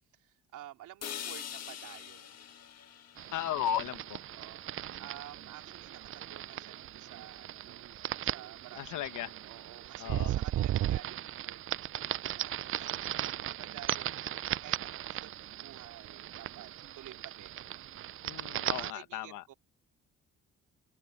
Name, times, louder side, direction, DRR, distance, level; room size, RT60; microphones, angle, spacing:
voice 1, 0.1-2.4 4.3-17.7 18.6-19.5, right 13 dB, 85° right, 3.0 m, -52 dB
sound 1, 1.0-5.0, left 9 dB, 55° left, 1.4 m, -45 dB
sound 2, 3.2-18.9, right 12 dB, 45° right, 0.4 m, -37 dB
voice 2, 3.3-4.2 8.7-9.3 10.0-10.3 18.2-19.4, left 11 dB, 85° left, 1.4 m, -35 dB
open air
cardioid pair, 90°, 30 cm